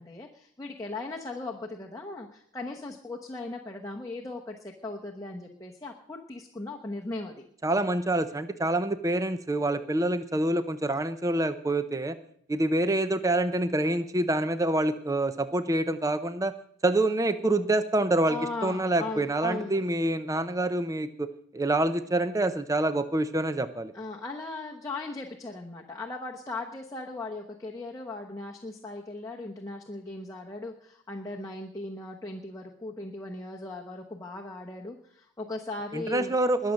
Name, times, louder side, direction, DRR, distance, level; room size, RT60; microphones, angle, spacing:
voice 1, 0.0-7.4 18.3-19.8 23.9-36.3, left 2 dB, 15° left, -1 dB, 1.0 m, -38 dB
voice 2, 7.6-12.2 12.5-16.5 16.8-21.3 21.5-23.9 35.9-36.7, right 1 dB, 15° right, 11 dB, 0.6 m, -26 dB
21.0 x 7.3 x 6.4 m, 0.68 s
head